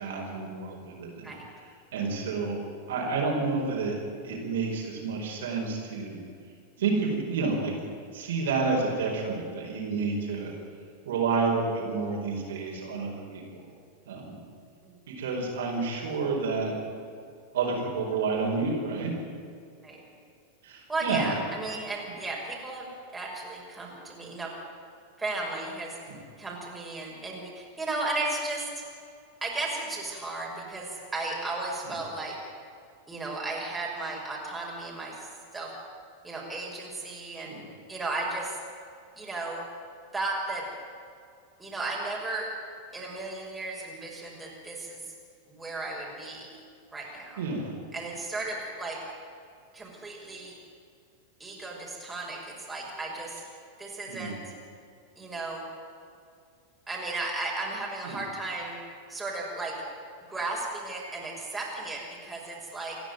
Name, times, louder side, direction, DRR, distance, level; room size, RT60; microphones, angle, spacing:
voice 1, 0.0-1.3 1.9-2.6 2.9-3.9 4.2-6.2 6.8-7.7 8.1-10.5 11.0-13.4 14.1-14.4 15.1-16.7 17.5-19.1 20.6-21.3 26.1-26.2 31.9-32.0 37.3-37.6 47.4-47.7 54.1-54.4 58.0-58.2, right 4 dB, 60° right, -1 dB, 4.9 m, -29 dB
voice 2, 20.9-24.5 25.2-26.0 26.4-28.8 29.4-32.4 33.1-35.7 36.2-37.6 37.9-38.5 39.2-39.6 40.1-40.7 41.6-42.5 42.9-45.0 45.5-46.5 46.9-47.4 47.9-49.0 49.7-50.6 51.4-53.4 53.8-54.3 55.2-55.6 56.9-58.8 59.1-59.7 60.3-63.0, right 2 dB, 10° right, -3 dB, 6.0 m, -35 dB
28.0 x 11.0 x 9.4 m, 2.4 s
figure-of-eight pair, 90°, 0 cm